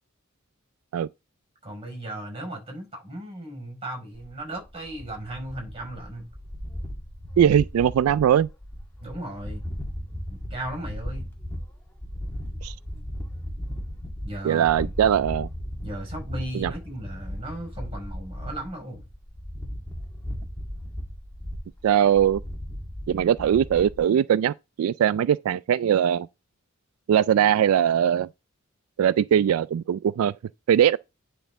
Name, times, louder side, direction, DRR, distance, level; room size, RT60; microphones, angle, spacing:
voice 1, 1.6-6.3 9.0-9.6 10.3-11.3 14.2-14.9 15.8-19.0, right 1 dB, 25° right, 5.3 m, -36 dB
sound 1, 4.1-24.0, equal, 10° left, 1.9 m, -36 dB
voice 2, 7.4-8.5 12.6-12.7 14.4-15.5 16.5-16.7 21.8-22.4 23.1-26.3 27.1-28.3 29.0-30.3 30.7-31.0, right 9 dB, 90° right, 0.3 m, -21 dB
10.0 x 4.5 x 3.6 m
head